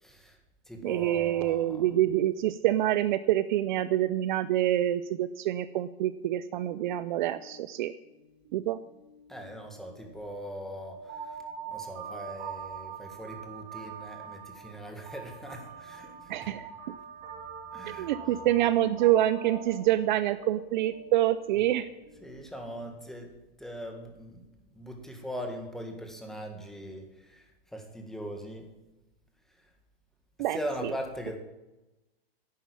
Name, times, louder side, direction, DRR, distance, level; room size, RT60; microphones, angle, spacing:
voice 1, 0.0-0.4 0.7-1.9 9.3-11.4 11.7-16.5 17.7-18.1 22.2-23.3 23.6-24.4 24.7-28.7 30.5-31.4, equal, ahead, 3 dB, 1.8 m, -40 dB
voice 2, 0.8-7.9 8.5-8.8 16.3-16.7 17.9-21.9 30.4-30.9, right 13 dB, 50° right, 14 dB, 0.6 m, -26 dB
sound 1, 8.1-8.2 8.5-22.8, right 6 dB, 30° right, 5.7 m, -44 dB
11.0 x 9.2 x 8.5 m, 1.0 s
hypercardioid pair, 150°, 31 cm